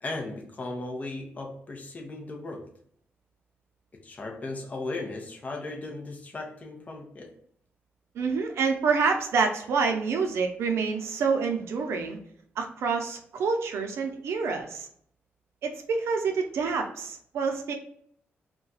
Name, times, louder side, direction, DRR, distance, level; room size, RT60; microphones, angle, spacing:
voice 1, 0.0-2.7 4.0-7.3, left 2 dB, 35° left, 0 dB, 0.7 m, -36 dB
voice 2, 8.1-12.2 12.6-14.9 15.6-17.7, right 5 dB, 85° right, 4 dB, 0.5 m, -27 dB
2.4 x 2.2 x 3.9 m, 0.64 s
cardioid pair, 100°, 4 cm